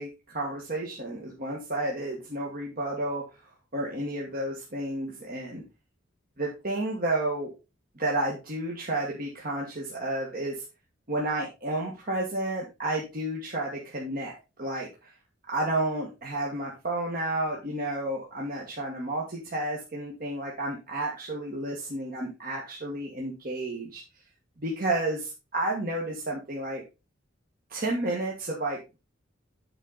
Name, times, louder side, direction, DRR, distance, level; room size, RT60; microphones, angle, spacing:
voice 1, 0.0-3.2 3.7-5.6 6.4-7.5 8.0-10.6 11.1-14.3 14.6-15.1 15.5-24.0 24.6-26.8 27.7-29.0, right 1 dB, 45° right, -2 dB, 1.8 m, -31 dB
8.9 x 5.1 x 4.0 m, 0.27 s
head